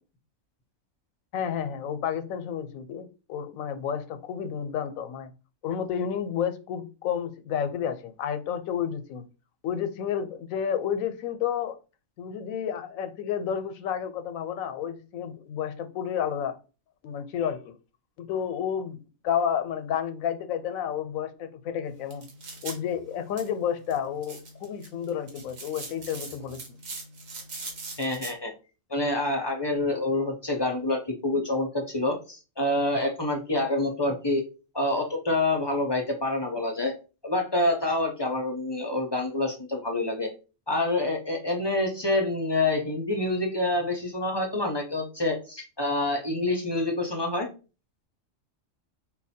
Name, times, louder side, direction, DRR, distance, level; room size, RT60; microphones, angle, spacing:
voice 1, 1.3-5.3 5.6-9.3 9.6-11.8 12.2-16.6 17.0-17.8 18.2-22.2 22.6-26.8, left 8 dB, 90° left, 1.0 m, -31 dB
sound 1, 21.9-28.3, right 3 dB, 70° right, 1.5 m, -42 dB
voice 2, 28.0-28.5 28.9-34.4 34.7-36.9 37.2-40.3 40.7-47.5, left 2 dB, 35° left, 0.4 m, -27 dB
4.4 x 2.2 x 4.2 m
omnidirectional pair, 1.4 m